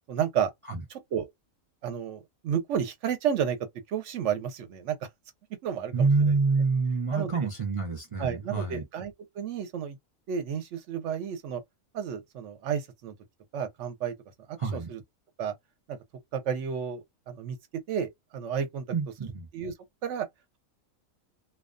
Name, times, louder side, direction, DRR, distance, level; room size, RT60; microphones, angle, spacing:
voice 1, 0.1-0.5 0.9-1.3 1.8-3.6 3.9-5.0 5.6-6.4 7.1-7.3 8.2-10.0 10.3-11.6 11.9-13.1 13.5-14.1 14.7-15.0 15.4-15.5 15.9-16.0 16.3-17.6 17.9-18.8 19.5-19.7 20.0-20.3, right 8 dB, 65° right, 0.9 m, -31 dB
voice 2, 5.9-8.8 14.6-14.9 18.9-19.5, right 4 dB, 50° right, 0.4 m, -27 dB
2.3 x 2.2 x 2.4 m
omnidirectional pair, 1.4 m